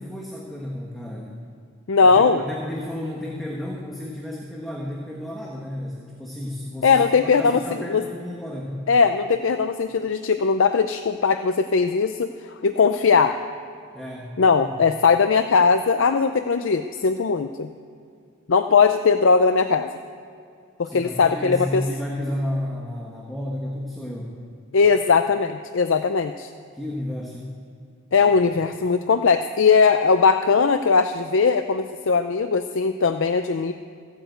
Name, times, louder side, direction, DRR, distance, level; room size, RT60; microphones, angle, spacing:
voice 1, 0.0-1.4 2.0-8.9 13.9-14.3 20.8-24.4 26.7-27.6 28.2-28.3, left 1 dB, ahead, -3 dB, 1.3 m, -32 dB
voice 2, 1.9-2.4 6.8-7.6 7.9-8.0 8.9-12.3 12.6-13.4 14.4-17.7 18.5-19.9 20.8-21.8 24.7-26.5 28.1-33.7, left 5 dB, 60° left, 8 dB, 0.5 m, -19 dB
15.0 x 8.9 x 7.9 m, 2.4 s
head